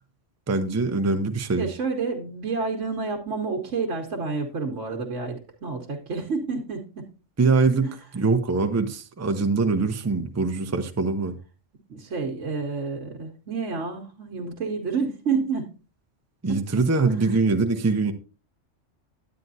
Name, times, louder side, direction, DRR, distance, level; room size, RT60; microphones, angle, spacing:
voice 1, 0.5-1.7 7.4-11.3 16.4-18.1, right 4 dB, 20° right, 0.5 m, -23 dB
voice 2, 1.6-7.0 7.8-7.9 11.9-15.7 16.5-17.3, right 4 dB, 75° right, 1.3 m, -29 dB
9.4 x 9.2 x 2.7 m
omnidirectional pair, 1.3 m